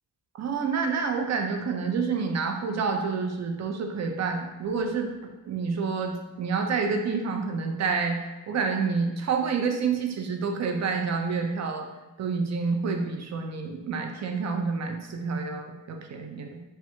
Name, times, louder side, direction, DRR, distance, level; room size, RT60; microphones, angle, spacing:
voice 1, 0.3-11.9 12.2-16.6, right 5 dB, 40° right, 3 dB, 0.4 m, -28 dB
2.3 x 2.1 x 2.9 m, 1.1 s
cardioid pair, 55°, 44 cm